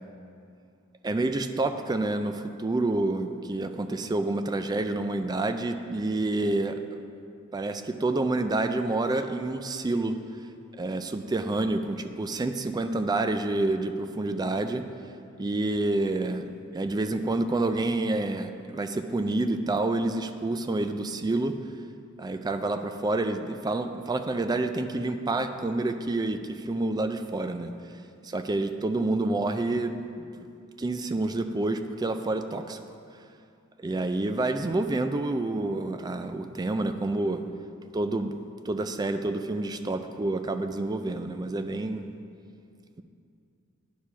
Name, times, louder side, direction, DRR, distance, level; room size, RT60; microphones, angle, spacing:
voice 1, 1.0-6.8 7.5-10.1 10.8-14.8 15.4-16.5 16.7-21.6 22.2-27.7 28.2-30.0 30.4-30.5 30.8-32.8 33.8-37.4 37.9-38.3 38.7-42.1, right 2 dB, 20° right, 8 dB, 0.3 m, -28 dB
10.0 x 4.8 x 5.6 m, 2.5 s
head